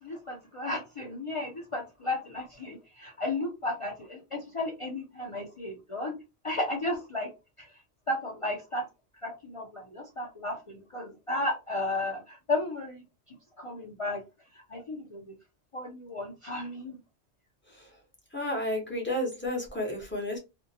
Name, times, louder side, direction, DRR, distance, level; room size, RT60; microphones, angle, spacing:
voice 1, 0.0-6.2 6.4-7.3 7.6-7.7 8.1-8.9 9.2-13.0 13.6-14.2 14.5-15.3 15.7-16.9, left 2 dB, 45° left, 0.4 m, -34 dB
voice 2, 18.3-20.4, left 1 dB, 10° left, 0.8 m, -32 dB
2.6 x 2.1 x 2.6 m
omnidirectional pair, 1.1 m